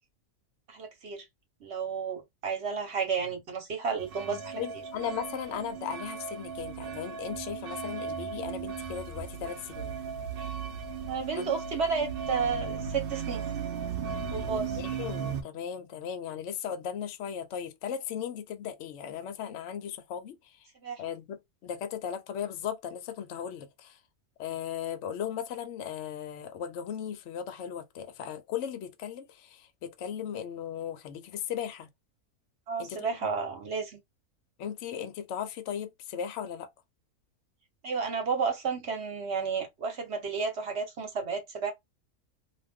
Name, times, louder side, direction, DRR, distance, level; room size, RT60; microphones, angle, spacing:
voice 1, 0.7-1.3 1.6-4.6 11.1-13.4 14.3-14.8 20.8-21.0 32.7-34.0 37.8-41.7, right 5 dB, 50° right, 1.1 m, -32 dB
sound 1, 4.0-15.4, right 6 dB, 70° right, 0.5 m, -36 dB
voice 2, 4.3-10.0 11.4-11.5 14.7-20.7 21.0-24.0 24.4-31.9 32.8-33.1 34.6-36.7, left 8 dB, 65° left, 0.8 m, -37 dB
2.5 x 2.3 x 3.4 m
omnidirectional pair, 1.6 m